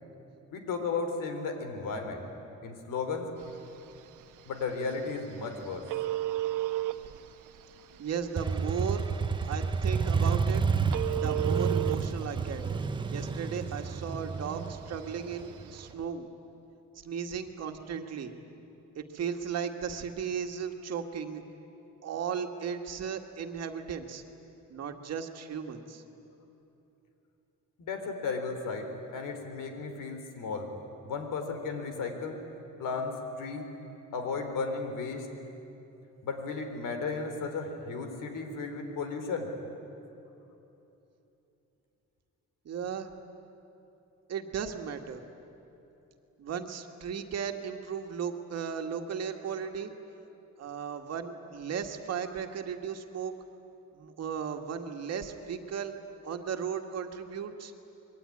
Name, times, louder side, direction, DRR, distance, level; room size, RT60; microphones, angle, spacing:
voice 1, 0.5-2.2 2.6-3.3 4.5-5.8 27.8-30.7 31.0-32.4 32.8-35.3 36.2-39.5, left 4 dB, 90° left, 5 dB, 3.9 m, -34 dB
Telephone, 3.4-15.9, right 14 dB, 80° right, 1.2 m, -38 dB
voice 2, 8.0-9.1 9.4-10.6 11.1-12.6 13.1-16.3 17.0-18.3 19.0-21.4 22.0-24.2 24.7-26.0 42.7-43.1 44.3-45.2 46.4-49.9 50.6-53.3 53.9-55.9 56.2-57.7, right 7 dB, 55° right, 5 dB, 1.8 m, -36 dB
Motorcycle, 8.4-16.0, right 5 dB, 15° right, 0.5 m, -30 dB
26.5 x 22.0 x 9.9 m, 3.0 s
cardioid pair, 180°, 31 cm